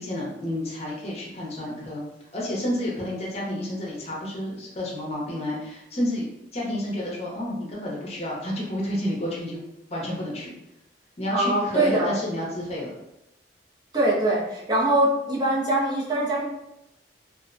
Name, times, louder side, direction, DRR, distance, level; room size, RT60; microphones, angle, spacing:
voice 1, 0.0-2.0 2.3-6.3 6.5-9.6 9.9-10.5 11.2-12.9, left 1 dB, 35° left, -4 dB, 0.6 m, -30 dB
voice 2, 11.3-12.1 13.9-16.4, right 1 dB, 25° right, -5 dB, 0.5 m, -22 dB
2.5 x 2.0 x 2.4 m, 0.86 s
head